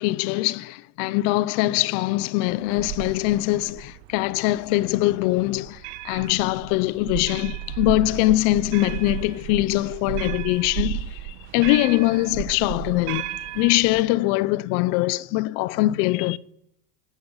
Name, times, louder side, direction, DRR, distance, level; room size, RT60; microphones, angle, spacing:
voice 1, 0.0-16.4, left 18 dB, 75° left, 0.8 m, -23 dB
sound 1, 2.5-14.0, right 14 dB, 80° right, 1.3 m, -34 dB
20.5 x 12.0 x 5.6 m
cardioid pair, 130°, 49 cm